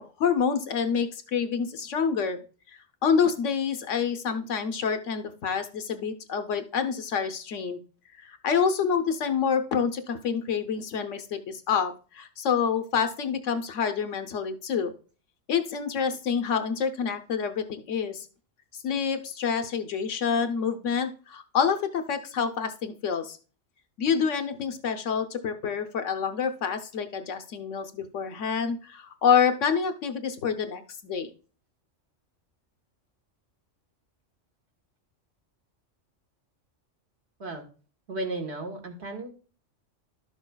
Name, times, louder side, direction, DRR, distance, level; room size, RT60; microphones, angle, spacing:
voice 1, 0.0-2.4 3.0-7.8 8.2-14.9 15.5-18.3 18.7-23.4 24.0-31.3, left 6 dB, 75° left, 8 dB, 1.1 m, -27 dB
voice 2, 38.1-39.3, right 2 dB, 60° right, 3 dB, 1.6 m, -34 dB
12.0 x 6.3 x 2.2 m, 0.37 s
omnidirectional pair, 1.3 m